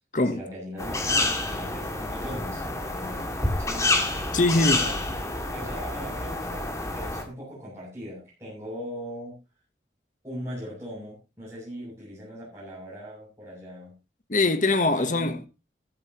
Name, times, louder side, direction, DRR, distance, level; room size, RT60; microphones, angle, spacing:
voice 1, 0.2-3.2 3.6-5.0 5.5-9.4 10.2-13.9 14.9-15.3, equal, 15° right, 7.8 m, -40 dB
sound 1, 0.8-7.2, left 2 dB, 20° left, 2.4 m, -28 dB
voice 2, 4.3-4.8 14.3-15.5, left 2 dB, 45° left, 1.2 m, -22 dB
14.0 x 14.0 x 3.1 m
head